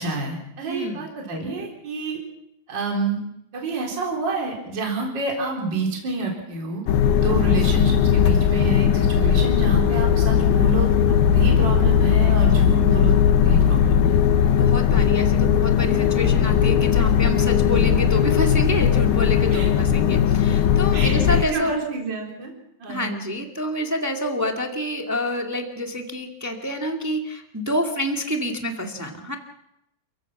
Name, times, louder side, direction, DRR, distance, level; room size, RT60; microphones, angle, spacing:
voice 1, 0.0-2.2 2.7-3.2 3.5-6.8 7.2-14.1 19.5-19.7 20.9-22.5 22.8-23.1, right 3 dB, 30° right, -1 dB, 4.4 m, -28 dB
voice 2, 0.7-1.0 14.4-21.8 22.9-29.3, left 1 dB, 10° right, 2 dB, 0.8 m, -28 dB
sound 1, 6.9-21.5, left 8 dB, 85° left, 2.9 m, -18 dB
29.5 x 16.0 x 6.1 m, 0.82 s
omnidirectional pair, 4.1 m